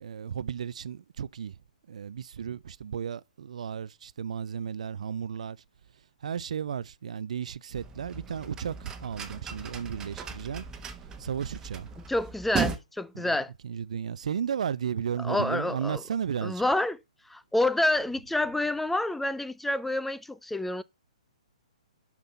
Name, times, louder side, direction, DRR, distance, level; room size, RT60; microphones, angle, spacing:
voice 1, 0.0-1.6 1.9-5.6 6.2-10.7 11.2-11.9 13.1-13.4 13.6-16.6, right 8 dB, 65° right, 0.4 m, -34 dB
sound 1, 7.7-12.8, right 6 dB, 15° right, 1.2 m, -37 dB
voice 2, 12.1-13.5 15.2-16.0 16.4-17.0 17.3-20.8, left 2 dB, 5° left, 0.4 m, -28 dB
6.0 x 5.6 x 6.8 m
hypercardioid pair, 130°, 4 cm